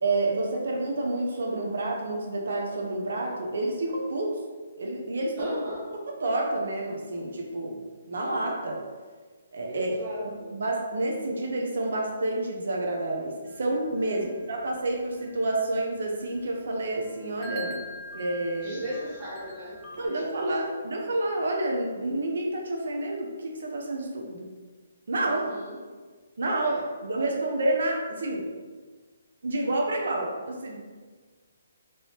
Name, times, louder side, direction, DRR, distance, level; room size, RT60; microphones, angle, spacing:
voice 1, 0.0-4.4 4.8-5.6 6.2-7.8 8.1-8.8 9.5-9.9 10.6-17.8 18.1-18.8 20.0-24.5 25.1-25.4 26.4-28.5 29.4-30.8, right 2 dB, 65° right, 0 dB, 0.6 m, -29 dB
voice 2, 5.4-5.8 9.6-10.5 14.0-14.5 18.6-20.8 25.2-25.8 26.5-26.9, equal, 20° right, -8 dB, 1.1 m, -38 dB
sound 1, 13.5-20.1, right 1 dB, 15° left, 0.4 m, -44 dB
3.0 x 2.8 x 3.1 m, 1.4 s
hypercardioid pair, 170°, 0 cm